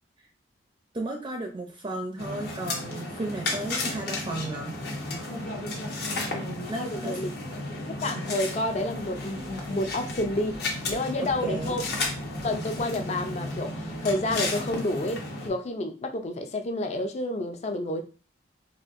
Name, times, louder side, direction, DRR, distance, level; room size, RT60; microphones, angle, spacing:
voice 1, 0.9-4.8 6.7-7.2 11.2-11.8, right 2 dB, 30° right, 2 dB, 0.5 m, -34 dB
sound 1, 2.2-15.5, left 2 dB, 65° left, 0.9 m, -33 dB
voice 2, 6.8-7.3 7.9-11.8 12.4-18.0, left 1 dB, 40° left, 7 dB, 0.4 m, -30 dB
sound 2, 8.7-15.0, right 1 dB, 85° left, 1.1 m, -44 dB
4.2 x 2.5 x 2.5 m, 0.35 s
head